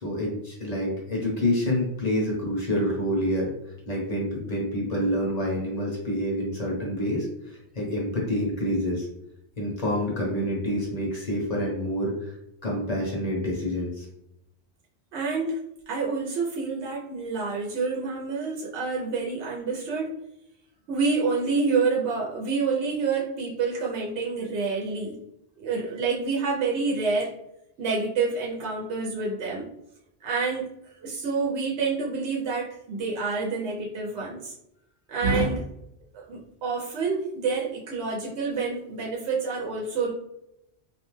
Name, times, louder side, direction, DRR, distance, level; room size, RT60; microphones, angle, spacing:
voice 1, 0.0-3.5 3.9-9.1 9.6-12.3 12.6-14.1, equal, 40° left, -3 dB, 0.8 m, -27 dB
voice 2, 15.1-15.6 15.9-20.1 20.9-25.2 25.6-27.3 27.8-29.7 30.2-34.5 35.1-35.7 36.1-40.1, right 4 dB, 85° right, -3 dB, 0.9 m, -28 dB
2.6 x 2.1 x 3.0 m, 0.81 s
omnidirectional pair, 1.1 m